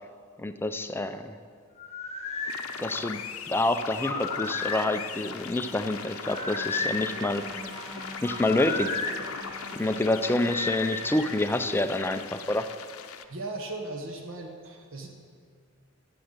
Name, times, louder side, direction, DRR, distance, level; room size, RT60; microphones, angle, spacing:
voice 1, 0.4-1.4 2.8-7.4 8.2-9.0 9.7-12.6, left 1 dB, 10° left, 8 dB, 0.4 m, -27 dB
sound 1, 1.8-2.6 4.0-4.9 6.2-7.1 8.2-9.2 10.5-11.4, left 3 dB, 35° left, 1.2 m, -33 dB
sound 2, 2.5-13.2, left 7 dB, 80° left, 0.7 m, -40 dB
sound 3, 4.1-12.6, equal, 20° right, 2.3 m, -45 dB
voice 2, 13.3-15.1, right 2 dB, 65° right, 2 dB, 1.2 m, -37 dB
10.0 x 8.0 x 8.0 m, 2.1 s
head